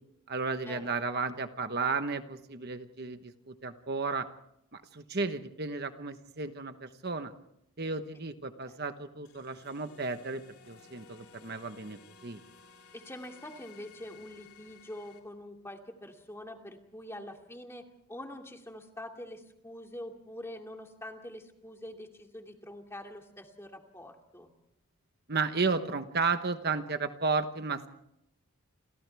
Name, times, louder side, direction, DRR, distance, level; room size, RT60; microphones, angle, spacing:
voice 1, 0.3-4.3 4.7-7.3 7.8-12.4 25.3-27.9, right 4 dB, 45° right, 8 dB, 1.2 m, -33 dB
sound 1, 9.2-15.2, left 5 dB, 75° left, 4.1 m, -56 dB
voice 2, 12.9-24.5, left 1 dB, 10° left, 2 dB, 2.4 m, -45 dB
29.5 x 27.5 x 3.5 m, 0.76 s
head